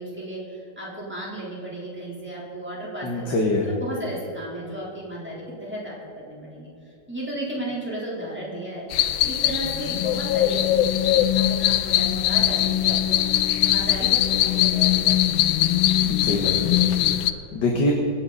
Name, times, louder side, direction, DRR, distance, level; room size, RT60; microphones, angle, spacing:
voice 1, 0.0-3.4 3.6-6.7 7.1-8.8 9.2-13.2 13.6-15.7, right 1 dB, 5° right, -6 dB, 3.6 m, -34 dB
voice 2, 3.0-3.7 16.0-17.9, left 2 dB, 60° left, 0 dB, 2.0 m, -25 dB
sound 1, 8.9-17.3, left 12 dB, 80° left, 1.4 m, -21 dB
26.0 x 8.8 x 4.1 m, 2.8 s
omnidirectional pair, 2.2 m